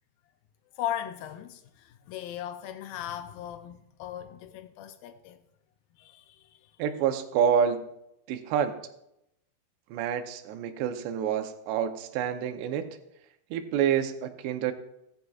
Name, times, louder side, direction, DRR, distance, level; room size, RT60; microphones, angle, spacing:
voice 1, 0.8-5.4 6.0-6.7, left 11 dB, 90° left, 2.0 m, -38 dB
voice 2, 6.8-7.8 8.3-8.8 9.9-12.9 13.5-14.7, right 8 dB, 85° right, 3.0 m, -27 dB
16.0 x 14.5 x 2.4 m
omnidirectional pair, 4.8 m